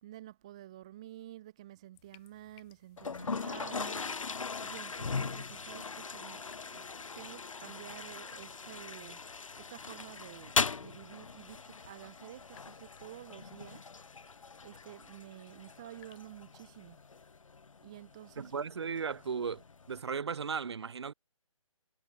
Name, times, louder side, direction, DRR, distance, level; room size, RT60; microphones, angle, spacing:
voice 1, 0.0-4.0 4.6-6.4 6.7-6.8 7.2-9.2 9.6-10.5 10.8-13.9 14.2-14.4 14.6-17.0 17.8-18.5, right 13 dB, 10° right, 0.5 m, -50 dB
sound 1, 1.9-17.4, left 25 dB, 15° left, 4.6 m, -67 dB
Toilet flush, 3.0-20.0, left 5 dB, 65° left, 2.8 m, -40 dB
voice 2, 18.4-19.6 19.9-21.1, right 6 dB, 50° right, 2.6 m, -36 dB
hypercardioid pair, 170°, 18 cm